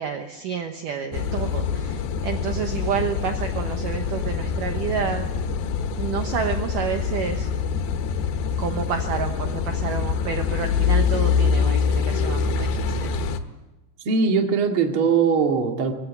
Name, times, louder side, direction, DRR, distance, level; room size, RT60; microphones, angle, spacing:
voice 1, 0.0-5.3 6.0-7.5 8.6-13.1, right 7 dB, 65° right, 5 dB, 2.4 m, -29 dB
Car passing by / Idling / Accelerating revving vroom, 1.1-13.4, left 6 dB, 90° left, 3.5 m, -25 dB
voice 2, 14.0-15.9, right 5 dB, 40° right, 3 dB, 2.3 m, -20 dB
24.5 x 16.5 x 9.6 m, 1.1 s
omnidirectional pair, 4.9 m